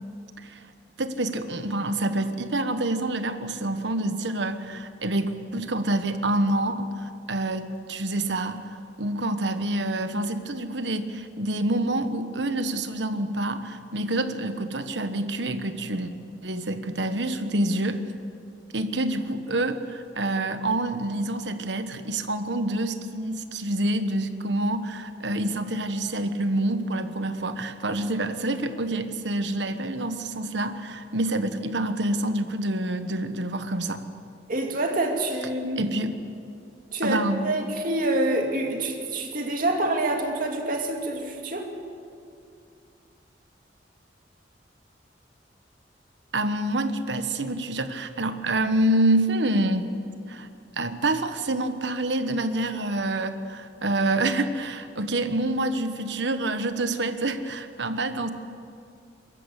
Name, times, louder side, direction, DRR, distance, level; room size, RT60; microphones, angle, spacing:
voice 1, 1.0-16.1 16.4-18.0 18.7-34.0 35.8-36.2 37.0-37.5 46.3-49.9 50.3-50.5 50.8-58.3, right 1 dB, 75° right, 9 dB, 1.2 m, -27 dB
voice 2, 34.5-35.8 36.9-37.2 37.4-41.7, right 2 dB, 50° right, 2 dB, 2.4 m, -26 dB
23.0 x 13.5 x 8.3 m, 2.4 s
head